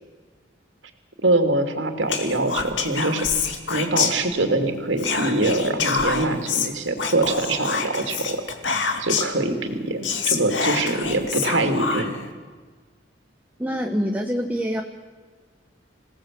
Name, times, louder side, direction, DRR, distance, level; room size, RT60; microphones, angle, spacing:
voice 1, 1.2-3.3 3.7-8.4 9.0-12.1, right 2 dB, 75° right, 5 dB, 2.9 m, -23 dB
Whispering, 2.1-4.6 5.0-9.4 9.7-9.8 10.0-12.3, left 5 dB, 75° left, 2.4 m, -26 dB
voice 2, 13.6-14.8, equal, 10° right, 3 dB, 1.2 m, -25 dB
27.0 x 18.0 x 7.7 m, 1.5 s
head